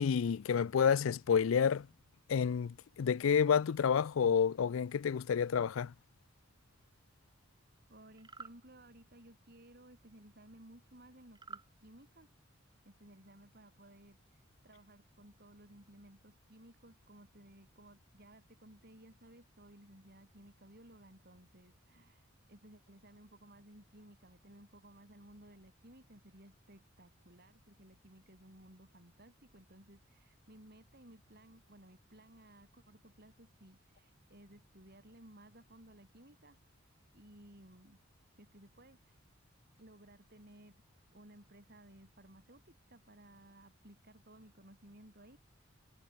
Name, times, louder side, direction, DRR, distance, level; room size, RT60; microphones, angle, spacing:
voice 1, 0.0-1.9 2.3-5.9, left 7 dB, 80° left, 0.4 m, -29 dB
voice 2, 7.6-12.3 12.8-36.6 37.1-38.0 38.3-39.2 39.8-40.8 41.1-45.4, right 1 dB, 50° right, 7.7 m, -58 dB
sound 1, 8.2-8.6 11.3-11.7, right 4 dB, 20° right, 2.0 m, -49 dB
head